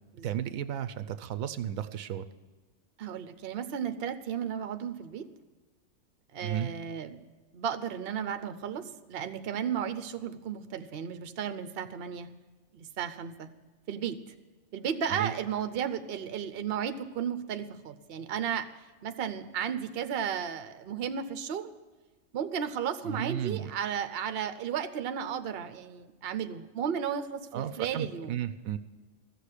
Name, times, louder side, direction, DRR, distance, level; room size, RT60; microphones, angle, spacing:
voice 1, 0.2-2.3 6.4-6.7 15.1-15.3 23.0-23.7 27.5-28.8, right 10 dB, 80° right, 11 dB, 1.0 m, -33 dB
voice 2, 3.0-5.3 6.3-7.2 7.5-12.3 12.7-13.5 13.9-14.3 14.7-18.7 19.0-21.7 22.3-28.4, right 8 dB, 50° right, 10 dB, 0.9 m, -34 dB
14.5 x 6.7 x 9.8 m, 1.3 s
omnidirectional pair, 1.4 m